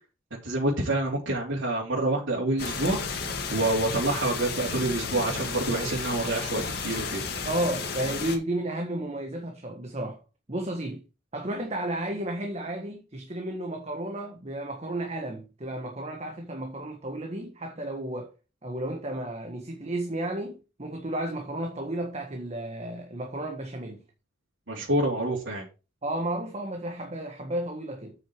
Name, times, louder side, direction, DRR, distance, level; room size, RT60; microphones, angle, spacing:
voice 1, 0.4-3.0 3.5-7.2 24.7-25.6, right 2 dB, 85° right, 3.1 m, -27 dB
sound 1, 2.6-8.4, left 5 dB, 55° left, 1.9 m, -33 dB
voice 2, 7.4-10.2 10.5-11.0 11.3-18.3 18.6-24.0 26.0-28.1, right 1 dB, 35° right, 1.5 m, -33 dB
8.5 x 6.4 x 4.7 m
head